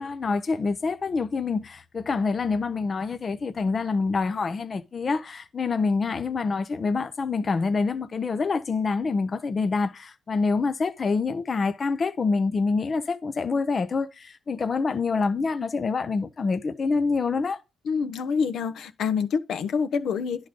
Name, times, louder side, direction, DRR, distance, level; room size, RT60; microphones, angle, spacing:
voice 1, 0.0-17.6, left 4 dB, 40° left, 0.7 m, -26 dB
voice 2, 17.9-20.5, left 6 dB, 70° left, 0.9 m, -27 dB
10.0 x 3.8 x 5.2 m
cardioid pair, 90°, 0 cm